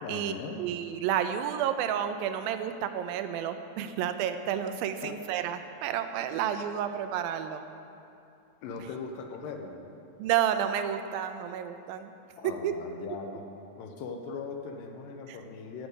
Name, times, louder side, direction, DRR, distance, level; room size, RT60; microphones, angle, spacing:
voice 1, 0.0-0.6 5.0-5.1 8.6-9.8 12.4-13.5 13.8-15.9, left 4 dB, 80° left, 3 dB, 2.5 m, -39 dB
voice 2, 0.6-7.6 10.2-12.1 12.4-12.7 15.3-15.4, right 9 dB, 85° right, 9 dB, 2.4 m, -30 dB
14.5 x 5.2 x 8.1 m, 2.7 s
omnidirectional pair, 4.1 m